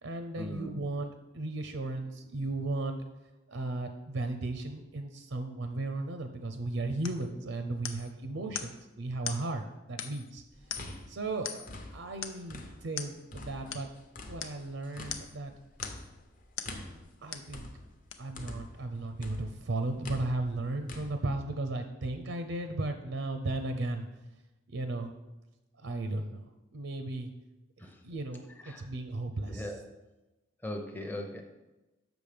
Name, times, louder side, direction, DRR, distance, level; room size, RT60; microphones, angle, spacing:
voice 1, 0.0-3.0 3.5-10.4 11.1-11.7 11.9-13.9 14.3-15.5 17.2-17.7 18.2-24.1 24.7-25.1 25.8-27.3 28.0-29.8, right 2 dB, 70° right, 6 dB, 0.6 m, -35 dB
sound 1, 7.0-7.3 7.8-8.1 8.5-8.8 9.2-9.5 10.0-10.3 10.7-11.0 11.4-11.8 12.2-12.5 13.0-13.2 13.7-13.9 14.4-14.6 15.1-15.4 15.8-16.1 16.6-16.8 17.3-17.5 18.1-18.2, left 8 dB, 70° left, 0.7 m, -40 dB
sound 2, 10.5-13.0 13.3-18.9 19.2-21.1, left 2 dB, 40° left, 0.8 m, -45 dB
voice 2, 29.5-29.8 30.6-31.4, left 1 dB, 10° left, 3 dB, 0.6 m, -38 dB
7.0 x 6.1 x 5.0 m, 1.0 s
head